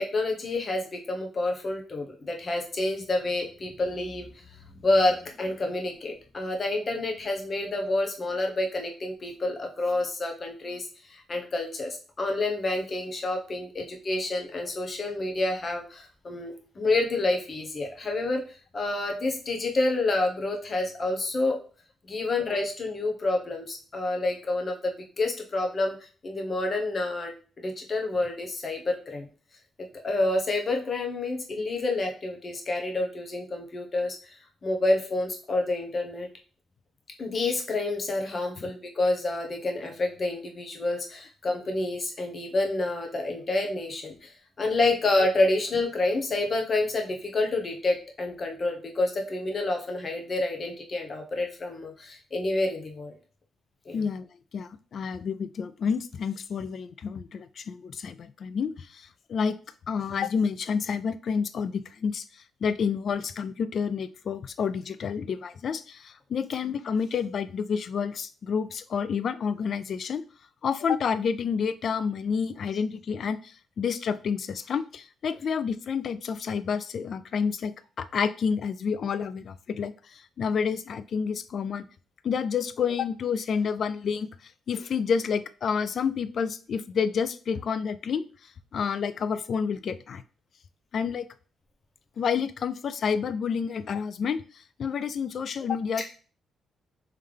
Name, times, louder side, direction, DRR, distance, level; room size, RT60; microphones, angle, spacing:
voice 1, 0.0-4.3 4.8-18.4 18.7-21.6 22.1-26.0 26.2-29.3 30.0-34.2 34.6-36.3 37.2-53.2 53.9-54.1 96.0-96.1, left 2 dB, 45° left, 2 dB, 1.0 m, -28 dB
voice 2, 53.9-54.3 54.5-58.7 59.3-59.6 59.9-62.2 62.6-70.2 70.6-73.4 73.8-79.9 80.4-81.8 82.2-84.3 84.7-88.2 88.7-90.2 90.9-91.2 92.2-94.4 94.8-96.0, left 6 dB, 60° left, 14 dB, 0.3 m, -29 dB
3.7 x 3.2 x 3.3 m, 0.39 s
cardioid pair, 70°, 0 cm